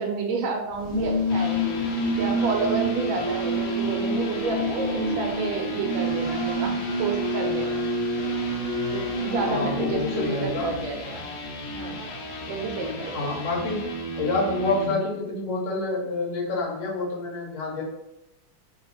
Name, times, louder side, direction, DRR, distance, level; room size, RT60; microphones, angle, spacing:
voice 1, 0.0-1.7 2.2-7.8 8.9-11.3 11.7-12.1 12.4-13.4, right 4 dB, 75° right, 3 dB, 1.3 m, -30 dB
sound 1, 0.7-11.2, equal, 35° left, 0.9 m, -27 dB
sound 2, 1.1-14.9, left 1 dB, 85° left, 1.8 m, -36 dB
voice 2, 9.5-10.7 13.1-13.8 14.2-17.8, left 3 dB, 70° left, -4 dB, 1.9 m, -28 dB
4.1 x 2.0 x 4.1 m, 0.88 s
omnidirectional pair, 2.4 m